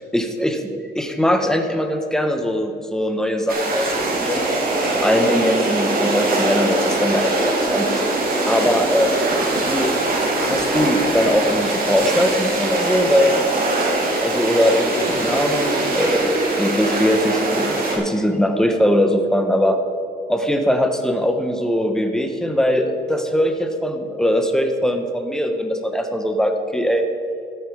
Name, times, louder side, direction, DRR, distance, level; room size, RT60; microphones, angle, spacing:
voice 1, 0.0-4.4 4.8-8.0 8.5-9.2 9.6-9.9 10.4-13.4 14.2-19.8 20.3-27.1, equal, 5° left, 6 dB, 1.4 m, -21 dB
sound 1, 3.5-18.0, right 2 dB, 60° right, 3.1 m, -22 dB
13.0 x 9.1 x 5.1 m, 2.6 s
cardioid pair, 85°, 17 cm